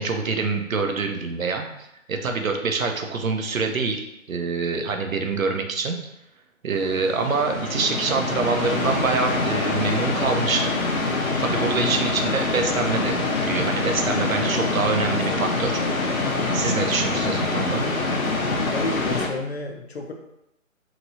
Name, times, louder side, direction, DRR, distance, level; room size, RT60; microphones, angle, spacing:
voice 1, 0.0-1.7 2.1-4.0 4.3-6.0 6.6-10.7 11.4-15.8 16.5-17.8, right 4 dB, 80° right, 4 dB, 0.7 m, -25 dB
sound 1, 6.7-19.3, left 3 dB, 90° left, 0.8 m, -25 dB
voice 2, 18.7-20.1, left 3 dB, 50° left, 3 dB, 0.5 m, -31 dB
3.0 x 2.9 x 2.6 m, 0.83 s
figure-of-eight pair, 160°, 40 cm